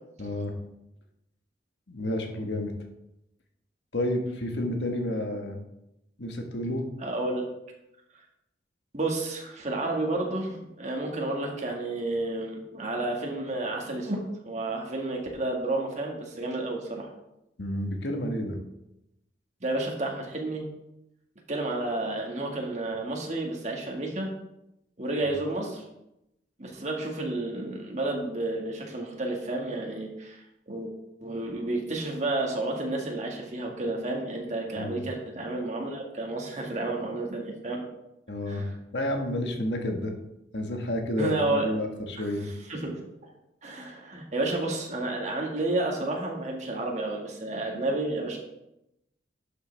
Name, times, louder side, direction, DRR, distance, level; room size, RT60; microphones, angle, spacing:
voice 1, 0.2-0.5 1.9-2.7 3.9-5.6 6.2-6.8 17.6-18.6 25.3-25.4 34.8-35.0 38.3-38.7 38.9-40.1 40.5-42.5, left 1 dB, 75° left, 3 dB, 1.4 m, -30 dB
voice 2, 7.0-7.4 8.9-17.1 19.6-20.6 21.5-24.3 25.0-25.8 26.6-37.8 38.5-38.7 41.2-41.7 42.2-42.3 42.7-43.0 43.6-48.4, right 2 dB, 40° right, 0 dB, 1.7 m, -31 dB
11.5 x 6.7 x 3.4 m, 0.87 s
head